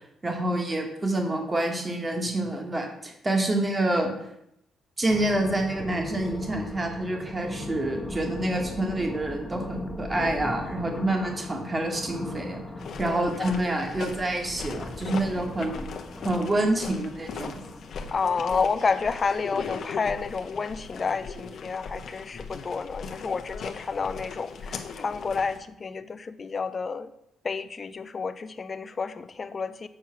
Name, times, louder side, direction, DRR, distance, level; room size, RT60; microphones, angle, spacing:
voice 1, 0.2-4.1 5.0-12.6 13.0-15.9 16.2-17.5, right 1 dB, 25° right, 3 dB, 1.6 m, -27 dB
sound 1, 5.1-20.4, left 2 dB, 15° left, 1.2 m, -39 dB
sound 2, 12.8-25.6, left 5 dB, 65° left, 0.8 m, -39 dB
voice 2, 13.0-13.7 18.1-27.1 27.4-29.9, left 5 dB, 35° left, 11 dB, 0.4 m, -30 dB
7.2 x 4.6 x 5.9 m, 0.80 s
cardioid pair, 90°, 0 cm